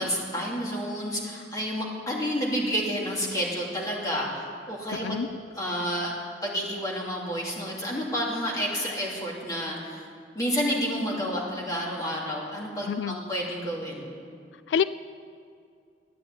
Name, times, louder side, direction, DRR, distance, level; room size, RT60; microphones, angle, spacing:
voice 1, 0.0-5.2 5.5-6.1 6.4-10.1 10.3-14.1, equal, 20° left, -4 dB, 2.8 m, -30 dB
voice 2, 4.9-5.3 12.9-13.2 14.7-14.8, left 7 dB, 90° left, 15 dB, 0.3 m, -26 dB
12.5 x 9.6 x 8.8 m, 2.3 s
head